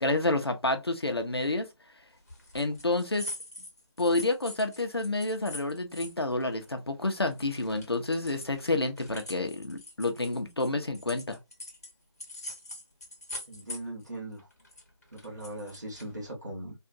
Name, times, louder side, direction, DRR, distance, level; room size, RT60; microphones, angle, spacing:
voice 1, 0.0-1.7 2.5-3.3 4.0-11.4, left 2 dB, 55° left, 0.7 m, -29 dB
sound 1, 2.3-7.0 7.3-11.9 12.2-14.1 14.4-16.3, left 1 dB, 30° left, 1.0 m, -43 dB
voice 2, 13.5-14.5 15.1-16.7, right 1 dB, 35° right, 1.4 m, -39 dB
3.6 x 2.5 x 2.6 m
figure-of-eight pair, 165°, 16 cm